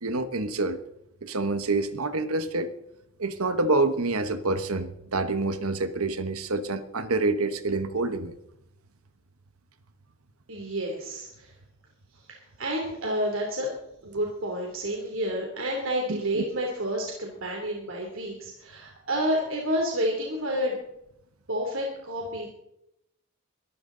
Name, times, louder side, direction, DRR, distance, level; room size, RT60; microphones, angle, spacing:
voice 1, 0.0-0.8 1.2-2.7 3.2-8.3 16.1-16.4, right 3 dB, 80° right, 11 dB, 1.2 m, -27 dB
voice 2, 10.5-11.5 12.1-13.7 14.0-20.8 21.5-22.5, equal, 60° right, 0 dB, 3.1 m, -30 dB
22.0 x 14.0 x 3.9 m, 0.81 s
head